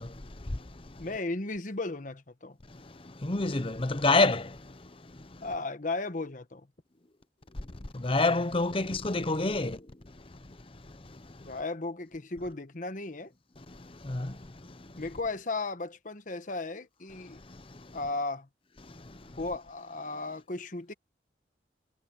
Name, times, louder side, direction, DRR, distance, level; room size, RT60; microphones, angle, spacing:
voice 1, 1.0-2.6 5.4-6.7 11.4-13.3 15.0-17.4 17.9-18.5 19.4-20.9, left 3 dB, 45° left, 1.2 m, -35 dB
voice 2, 3.2-4.4 8.0-9.8 14.1-14.3, left 2 dB, 30° left, 0.9 m, -26 dB
head